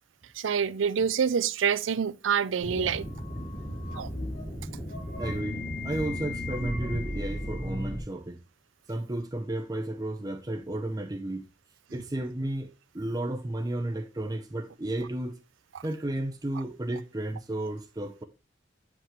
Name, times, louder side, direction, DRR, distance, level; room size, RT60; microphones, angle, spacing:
voice 1, 0.4-3.0 3.9-4.1, right 7 dB, 85° right, 0.5 m, -26 dB
sound 1, 2.6-8.0, left 1 dB, 75° left, 3.6 m, -34 dB
voice 2, 5.2-8.4 8.9-11.5 11.9-15.4 15.8-18.2, right 1 dB, 20° right, 0.5 m, -33 dB
7.9 x 5.8 x 3.1 m
head